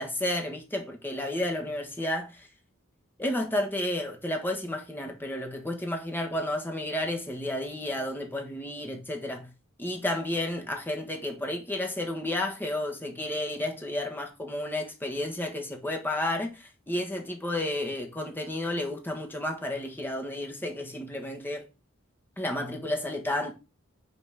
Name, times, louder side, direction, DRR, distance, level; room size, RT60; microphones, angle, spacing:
voice 1, 0.0-2.5 3.2-9.5 9.8-21.7 22.4-23.5, left 1 dB, 10° left, 1.3 m, -32 dB
5.6 x 4.3 x 6.1 m
head